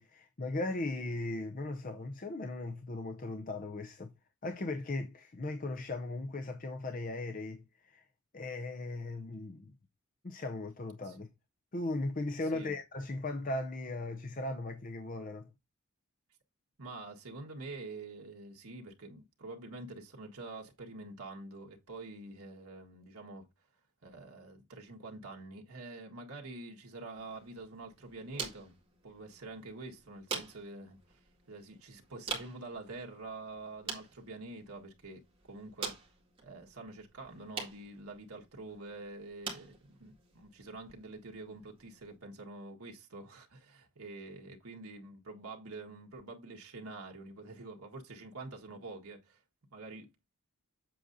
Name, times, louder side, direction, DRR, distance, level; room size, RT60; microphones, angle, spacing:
voice 1, 0.0-4.1 4.4-8.0 8.3-9.7 10.2-11.3 11.7-15.5, left 2 dB, 35° left, 0.6 m, -38 dB
voice 2, 16.8-23.5 24.0-28.8 29.0-31.2 31.5-36.0 36.4-49.4 49.7-50.3, right 2 dB, 80° right, 1.7 m, -47 dB
sound 1, 27.1-42.2, right 5 dB, 25° right, 2.0 m, -46 dB
7.5 x 7.5 x 2.7 m
head